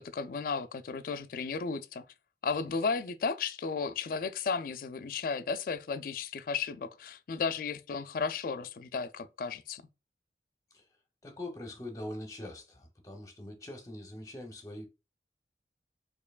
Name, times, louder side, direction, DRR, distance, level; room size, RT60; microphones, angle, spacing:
voice 1, 0.0-2.1 2.4-9.8, left 5 dB, 50° left, 0.3 m, -34 dB
voice 2, 11.2-14.9, left 1 dB, 20° left, 0.7 m, -43 dB
4.4 x 2.9 x 2.3 m
head